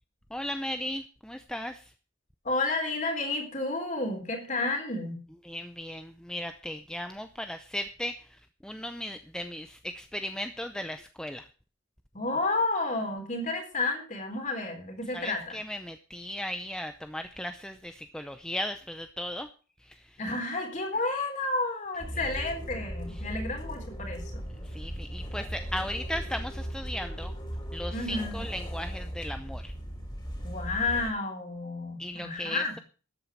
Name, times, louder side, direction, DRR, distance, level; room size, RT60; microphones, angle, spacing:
voice 1, 0.3-1.9 5.4-8.2 8.6-11.5 15.1-19.5 19.9-20.0 24.7-27.3 27.7-29.7 32.0-32.8, left 1 dB, 5° left, 8 dB, 0.6 m, -36 dB
voice 2, 2.4-5.2 12.1-15.6 20.2-24.4 27.9-28.5 30.4-32.8, left 2 dB, 35° left, 3 dB, 3.9 m, -31 dB
sound 1, 22.0-31.1, equal, 20° left, 3.3 m, -37 dB
13.0 x 8.6 x 6.2 m, 0.37 s
head